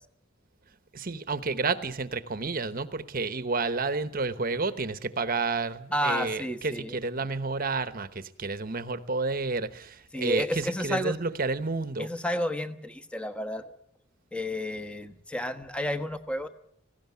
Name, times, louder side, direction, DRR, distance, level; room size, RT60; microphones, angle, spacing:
voice 1, 0.9-12.1, right 3 dB, 45° right, 1.0 m, -30 dB
voice 2, 5.9-7.0 10.1-11.1 12.0-13.7 14.3-16.5, equal, 5° left, 1.1 m, -31 dB
18.5 x 16.5 x 9.4 m
head